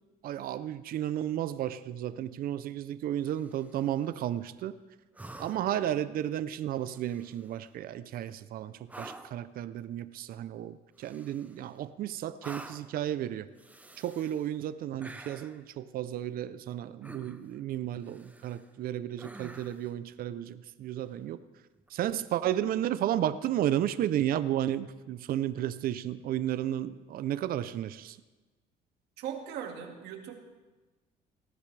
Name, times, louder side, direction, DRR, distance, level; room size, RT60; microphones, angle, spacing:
voice 1, 0.2-4.8 5.4-13.5 14.0-21.4 21.9-28.2, right 11 dB, 60° right, 13 dB, 0.6 m, -33 dB
sound 1, 3.2-3.9 5.1-5.8 6.8-7.6 8.9-9.4 11.0-11.7 12.4-13.0 13.6-14.5 15.0-15.6 17.0-17.6 18.0-18.7 19.2-19.9 21.8-21.9, right 2 dB, 10° right, 0.8 m, -48 dB
voice 2, 29.2-30.4, right 8 dB, 80° right, 3 dB, 2.1 m, -39 dB
18.5 x 14.0 x 3.3 m, 1.2 s
cardioid pair, 110°, 17 cm